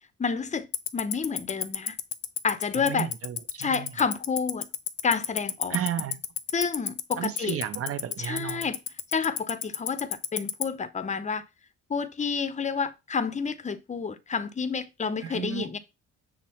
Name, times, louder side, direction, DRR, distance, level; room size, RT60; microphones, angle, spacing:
voice 1, 0.2-0.7 0.9-2.0 2.4-3.1 3.6-4.7 5.0-5.8 6.5-7.6 8.2-8.8 9.1-11.4 11.9-15.8, left 5 dB, 25° left, 0.5 m, -29 dB
Tick-tock, 0.7-10.6, left 14 dB, 85° left, 0.5 m, -27 dB
voice 2, 2.9-3.9 5.7-6.2 7.2-8.7 15.2-15.8, right 10 dB, 50° right, 0.6 m, -33 dB
6.1 x 2.0 x 4.2 m
cardioid pair, 90°, 30 cm